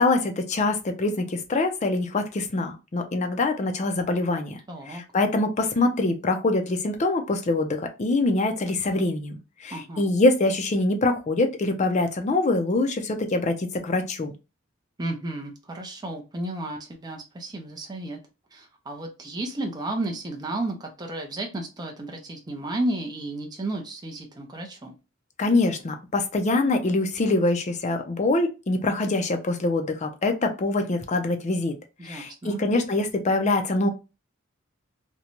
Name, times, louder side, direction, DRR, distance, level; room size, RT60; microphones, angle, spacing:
voice 1, 0.0-4.6 4.9-9.4 9.6-14.3 25.4-31.7 32.0-33.9, left 2 dB, 35° left, 6 dB, 0.5 m, -24 dB
voice 2, 4.7-5.0 9.7-10.1 15.0-18.2 18.5-24.9 32.0-32.7, right 1 dB, 20° right, 2 dB, 0.5 m, -33 dB
2.6 x 2.1 x 2.9 m, 0.28 s
head